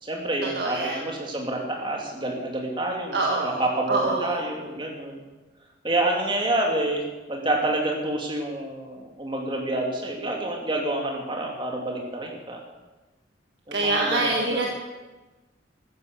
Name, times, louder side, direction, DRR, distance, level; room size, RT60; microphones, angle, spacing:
voice 1, 0.0-5.2 5.8-12.6 13.7-14.7, right 1 dB, 25° right, 1 dB, 2.7 m, -28 dB
voice 2, 0.5-1.0 3.1-3.6 3.9-4.3 13.7-14.7, right 2 dB, 60° right, 0 dB, 1.6 m, -25 dB
14.0 x 10.0 x 7.3 m, 1.2 s
head